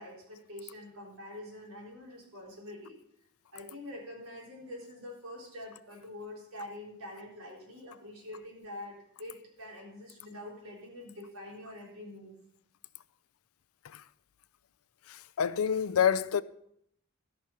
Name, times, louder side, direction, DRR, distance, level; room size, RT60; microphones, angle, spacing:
voice 1, 0.0-3.0 3.5-12.3, left 1 dB, 75° right, 3.8 m, -45 dB
voice 2, 15.1-16.4, left 8 dB, 80° left, 0.5 m, -27 dB
14.0 x 6.1 x 5.9 m
head